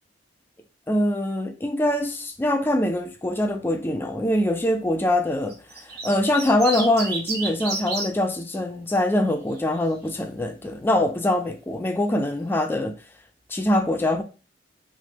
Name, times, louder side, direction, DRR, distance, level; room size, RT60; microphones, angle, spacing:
voice 1, 0.9-12.9 13.5-14.2, left 1 dB, 10° left, 0.3 m, -23 dB
sound 1, 5.5-8.1 9.3-9.8, right 3 dB, 60° right, 0.9 m, -30 dB
3.3 x 2.1 x 3.0 m
head